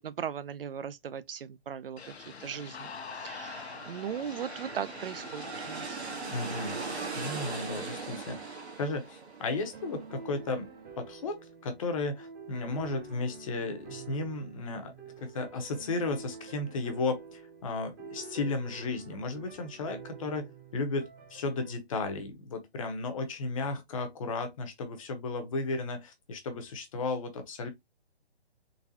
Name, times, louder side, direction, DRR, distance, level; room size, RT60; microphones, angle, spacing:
voice 1, 0.0-2.1 2.4-2.9 3.1-6.0, right 8 dB, 60° right, 0.4 m, -38 dB
sound 1, 2.0-8.1, left 5 dB, 75° left, 0.9 m, -46 dB
sound 2, 3.0-10.7, right 4 dB, 80° right, 1.5 m, -40 dB
voice 2, 6.3-6.8 7.2-10.7 11.0-27.7, left 3 dB, 30° left, 0.8 m, -34 dB
sound 3, 9.7-21.7, right 5 dB, 20° right, 0.9 m, -48 dB
3.9 x 2.3 x 2.8 m
hypercardioid pair, 155°, 32 cm